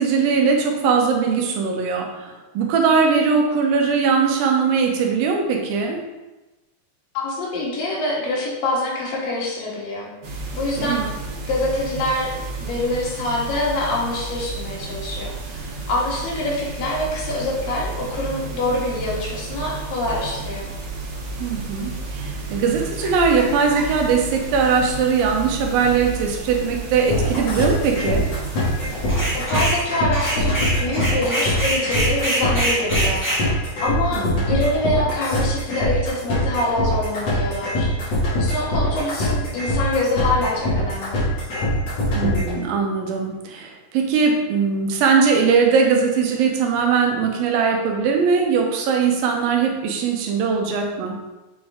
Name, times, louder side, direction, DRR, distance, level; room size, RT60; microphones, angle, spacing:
voice 1, 0.0-6.0 10.8-11.1 21.4-28.3 34.1-34.4 42.1-51.2, right 5 dB, 85° right, 2 dB, 2.7 m, -20 dB
voice 2, 7.1-10.1 10.5-11.1 11.5-12.3 12.6-20.7 29.3-41.2, left 1 dB, 75° left, -4 dB, 3.4 m, -25 dB
sound 1, 10.2-29.4, right 3 dB, 60° right, 2.1 m, -32 dB
sound 2, 27.1-42.5, left 1 dB, 50° left, 3.2 m, -23 dB
sound 3, 29.1-29.8 30.1-33.4, right 1 dB, 20° left, 0.5 m, -24 dB
7.6 x 5.3 x 3.6 m, 1.1 s
omnidirectional pair, 4.0 m